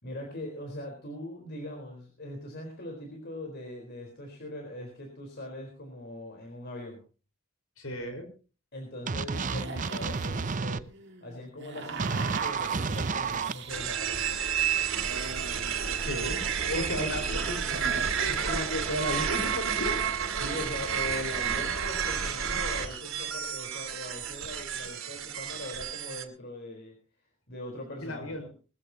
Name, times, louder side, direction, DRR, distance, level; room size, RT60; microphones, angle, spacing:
voice 1, 0.0-7.0 8.7-10.8 11.2-14.5 16.2-16.3 16.7-17.1 18.2-18.5 20.3-26.9 27.5-28.4, left 1 dB, 55° left, 2 dB, 4.2 m, -41 dB
voice 2, 7.8-8.3 16.0-16.4 16.7-20.0 28.0-28.5, left 1 dB, 85° left, 7 dB, 4.8 m, -34 dB
sound 1, 9.1-10.8 12.0-13.5, right 5 dB, 40° right, 0.6 m, -30 dB
sound 2, 9.3-13.8 14.8-18.1, right 4 dB, 55° right, 2.1 m, -42 dB
sound 3, 13.7-26.2, right 7 dB, 80° right, 3.0 m, -31 dB
21.0 x 15.0 x 2.9 m, 0.35 s
head